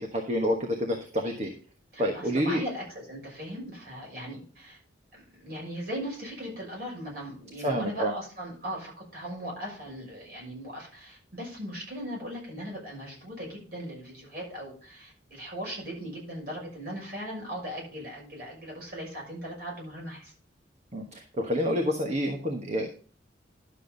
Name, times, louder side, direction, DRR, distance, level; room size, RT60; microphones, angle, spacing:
voice 1, 0.0-1.5 2.0-2.6 7.6-8.1 20.9-22.9, equal, 35° right, 2 dB, 1.2 m, -28 dB
voice 2, 1.9-4.8 5.1-20.3, equal, 50° right, -2 dB, 6.3 m, -38 dB
11.5 x 7.2 x 3.9 m, 0.40 s
head